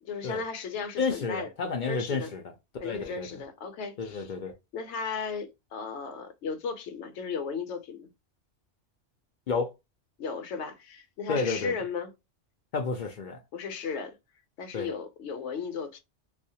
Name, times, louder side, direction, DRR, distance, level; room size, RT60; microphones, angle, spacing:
voice 1, 0.0-1.5 1.9-2.3 2.8-4.3 4.7-8.1 10.2-12.1 13.5-14.2 14.6-16.0, left 5 dB, 75° left, 0.9 m, -35 dB
voice 2, 1.0-2.4 2.8-3.4 4.0-4.5 9.5-9.7 11.3-11.7 12.7-13.4 14.7-14.9, left 4 dB, 60° left, 0.5 m, -30 dB
2.4 x 2.1 x 2.7 m
omnidirectional pair, 1.2 m